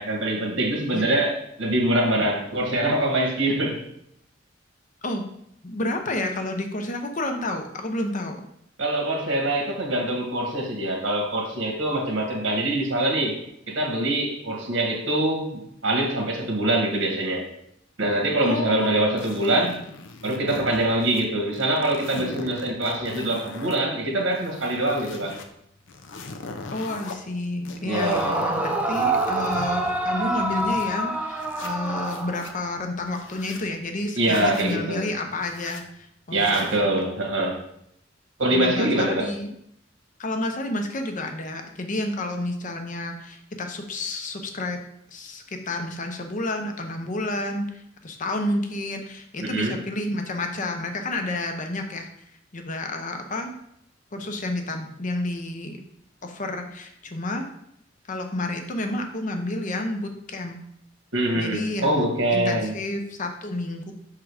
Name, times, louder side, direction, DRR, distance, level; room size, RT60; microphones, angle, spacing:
voice 1, 0.0-3.8 8.8-13.4 13.7-17.4 18.0-19.8 20.2-25.4 27.8-28.4 34.1-35.1 36.3-37.6 38.4-39.3 49.4-49.8 61.1-62.8, right 1 dB, 90° right, 1 dB, 1.6 m, -24 dB
voice 2, 5.6-8.4 18.4-19.2 19.5-19.6 26.7-37.0 38.5-39.5 40.2-44.8 45.1-52.1 52.5-53.5 54.1-55.8 56.2-57.5 58.1-60.6 61.3-63.9, left 2 dB, 45° left, 4 dB, 0.8 m, -30 dB
sound 1, 19.2-21.3 21.5-23.8 24.2-25.5 25.9-27.1 27.6-30.9 31.4-32.5 33.0-33.7 34.2-34.8 35.4-35.8 36.3-36.8, left 3 dB, 80° left, 0.7 m, -41 dB
Yell / Screaming, 27.9-32.8, right 2 dB, 10° right, 0.6 m, -26 dB
6.1 x 3.8 x 4.8 m, 0.74 s
head